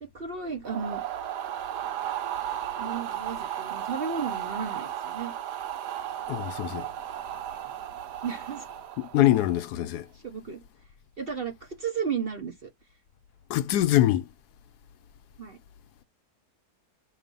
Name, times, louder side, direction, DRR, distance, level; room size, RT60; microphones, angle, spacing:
voice 1, 0.0-1.0 2.8-5.3 8.2-8.7 9.1-9.2 10.1-10.6 11.2-12.7 15.4-15.6, right 6 dB, 50° right, 0.8 m, -34 dB
sound 1, 0.6-9.7, right 11 dB, 85° right, 1.3 m, -35 dB
voice 2, 6.3-6.9 9.0-10.1 13.5-14.2, left 14 dB, 80° left, 1.1 m, -24 dB
6.9 x 3.0 x 5.3 m
omnidirectional pair, 1.7 m